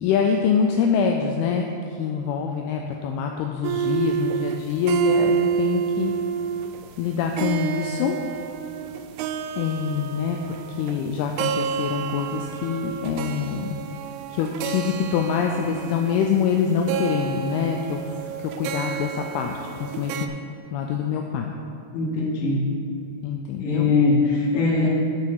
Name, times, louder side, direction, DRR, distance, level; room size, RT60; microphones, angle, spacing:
voice 1, 0.0-6.1 7.0-8.2 9.6-13.7 14.3-18.1 18.4-20.3 20.7-21.5 23.2-23.9 24.8-24.9, left 6 dB, 85° left, 2 dB, 2.3 m, -25 dB
sound 1, 3.6-20.3, right 8 dB, 85° right, 2.2 m, -29 dB
voice 2, 21.9-22.7 23.6-24.9, left 3 dB, 50° left, -4 dB, 2.4 m, -21 dB
9.7 x 6.9 x 4.7 m, 2.4 s
omnidirectional pair, 4.9 m